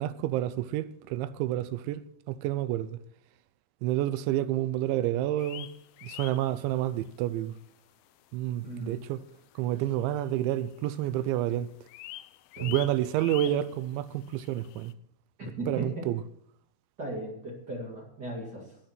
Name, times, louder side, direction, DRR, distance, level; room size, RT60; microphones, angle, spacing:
voice 1, 0.0-2.0 2.3-3.0 3.8-5.7 6.0-7.5 8.3-9.2 9.6-11.7 12.6-14.9 15.7-16.2, right 13 dB, 80° right, 2.8 m, -29 dB
sound 1, 5.4-7.1 7.4-7.6 8.1-8.2 8.9-9.0 9.2-9.3 9.5-10.6 10.9-11.3 11.5-14.9, left 16 dB, 85° left, 2.7 m, -45 dB
voice 2, 8.6-9.0 12.5-12.7 15.4-16.1 17.0-18.8, right 1 dB, 35° right, 1.7 m, -37 dB
17.5 x 6.7 x 6.0 m
omnidirectional pair, 5.6 m